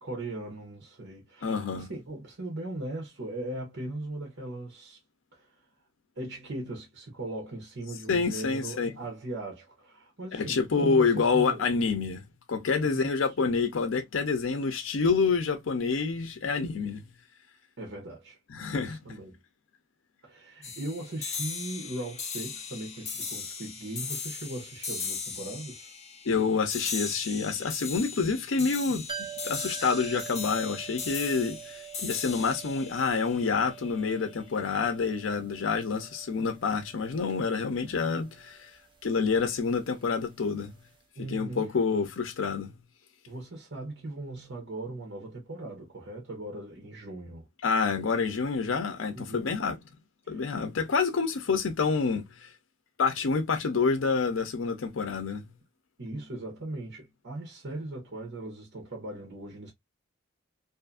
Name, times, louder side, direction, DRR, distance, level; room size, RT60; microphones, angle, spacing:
voice 1, 0.0-5.0 5.3-5.5 6.2-11.6 12.8-13.1 13.4-13.5 17.8-18.4 18.7-19.4 20.2-25.9 41.2-41.6 43.3-47.5 49.1-49.6 50.2-50.5 56.0-59.7, right 2 dB, 60° right, 0.9 m, -39 dB
voice 2, 1.4-1.9 8.1-8.9 10.3-12.2 12.5-17.0 18.5-19.0 26.3-29.1 29.4-38.7 39.0-40.7 41.3-42.7 47.6-49.8 50.3-52.5 53.0-55.4, left 5 dB, 75° left, 0.6 m, -27 dB
sound 1, 20.6-34.1, left 5 dB, 35° left, 0.8 m, -38 dB
sound 2, 29.1-40.7 41.0-41.1, right 9 dB, 25° right, 0.5 m, -46 dB
2.6 x 2.5 x 2.3 m
head